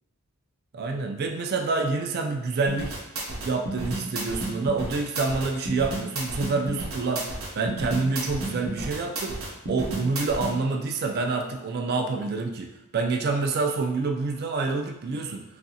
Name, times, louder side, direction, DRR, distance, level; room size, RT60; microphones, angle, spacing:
voice 1, 0.7-3.0 3.4-7.3 7.5-15.4, right 3 dB, 45° right, 3 dB, 0.3 m, -27 dB
sound 1, 2.7-10.5, right 2 dB, 65° right, 0.7 m, -32 dB
3.0 x 2.4 x 2.7 m, 0.91 s
head